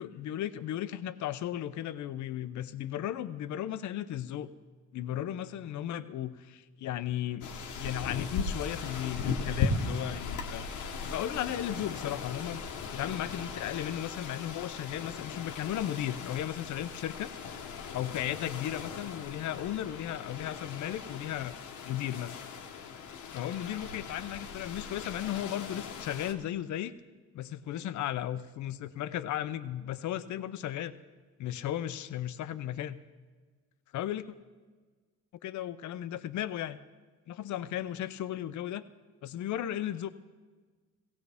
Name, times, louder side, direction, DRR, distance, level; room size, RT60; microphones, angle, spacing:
voice 1, 0.0-4.5 4.9-7.5 7.8-10.7 11.0-12.6 12.9-17.3 17.9-21.6 21.8-22.4 23.3-26.9 27.3-30.9 31.4-33.0 33.9-34.2 35.4-36.8 37.3-38.8 39.2-40.1, left 11 dB, 70° left, 13 dB, 0.7 m, -35 dB
sound 1, 7.4-26.3, left 5 dB, 90° left, 1.2 m, -38 dB
17.0 x 16.5 x 3.5 m, 1.4 s
cardioid pair, 90°, 30 cm